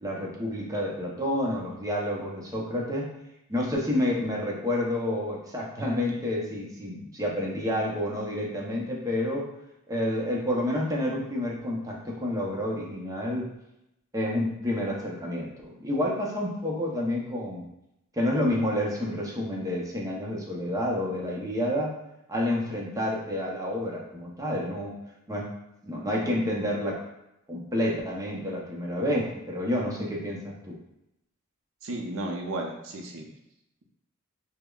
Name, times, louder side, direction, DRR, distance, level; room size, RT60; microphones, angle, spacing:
voice 1, 0.0-3.1 3.5-9.5 9.9-13.5 14.1-17.6 18.1-21.9 22.3-25.0 25.3-25.5 25.8-27.0 27.5-30.8, left 1 dB, 15° right, -3 dB, 0.6 m, -29 dB
voice 2, 31.8-33.3, right 2 dB, 65° right, 1 dB, 0.6 m, -33 dB
5.0 x 2.1 x 2.3 m, 0.86 s
head